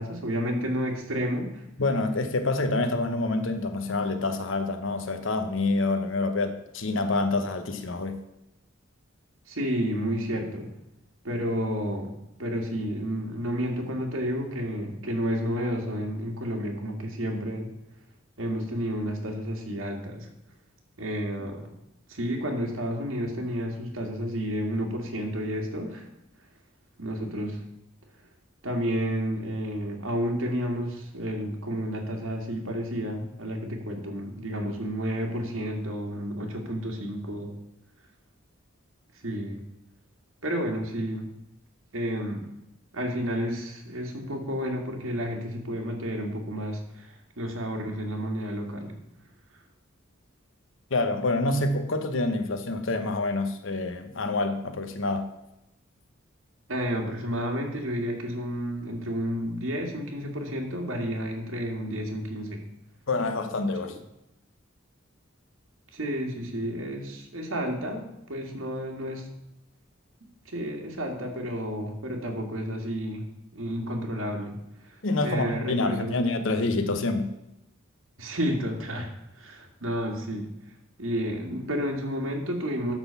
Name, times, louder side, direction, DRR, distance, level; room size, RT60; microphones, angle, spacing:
voice 1, 0.0-1.6 9.5-10.7 11.2-12.1 12.4-17.7 18.4-20.3 21.0-21.7 22.1-26.1 27.0-27.6 28.6-37.5 39.2-39.6 40.4-41.3 41.9-42.4 42.9-48.9 56.7-62.6 63.8-64.0 65.9-69.3 70.5-73.3 73.5-74.6 74.8-76.2 78.2-79.1 79.3-80.5 81.0-82.9, equal, 85° right, 1 dB, 2.0 m, -31 dB
voice 2, 1.8-8.2 50.9-55.3 63.1-64.0 75.0-77.3, left 2 dB, 70° left, 7 dB, 0.9 m, -27 dB
12.0 x 4.1 x 6.9 m, 0.87 s
head